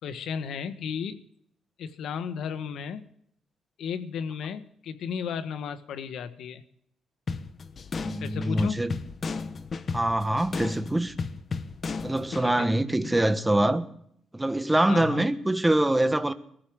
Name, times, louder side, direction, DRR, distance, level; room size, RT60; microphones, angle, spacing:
voice 1, 0.0-1.2 1.8-3.0 3.8-6.6 8.2-8.8 12.4-12.7 14.9-15.3, left 7 dB, 75° left, 1.4 m, -34 dB
sound 1, 7.3-12.5, left 4 dB, 40° left, 1.1 m, -34 dB
voice 2, 8.0-8.9 9.9-11.1 12.0-13.8 14.3-16.3, right 1 dB, 10° right, 1.3 m, -24 dB
21.0 x 14.5 x 3.7 m
cardioid pair, 90°, 0 cm